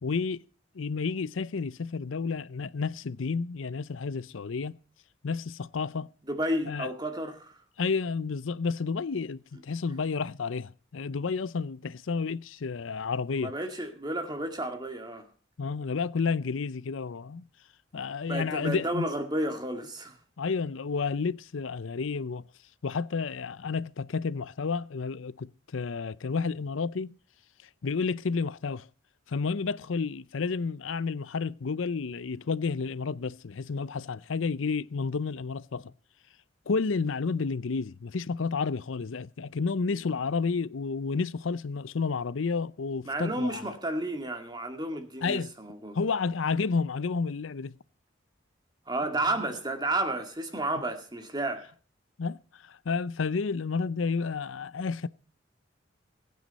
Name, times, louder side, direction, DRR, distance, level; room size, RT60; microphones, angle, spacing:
voice 1, 0.0-0.4 0.7-4.8 5.2-6.1 6.7-6.9 7.8-13.5 15.6-17.5 17.9-19.1 20.4-22.4 22.8-27.1 27.8-28.9 29.3-35.9 36.7-43.7 45.2-45.5 45.9-47.7 52.2-55.1, left 4 dB, 85° left, 0.6 m, -31 dB
voice 2, 6.3-7.6 13.4-15.3 18.3-20.2 43.1-46.0 48.9-51.7, right 1 dB, 20° right, 2.1 m, -32 dB
21.0 x 9.3 x 4.1 m
head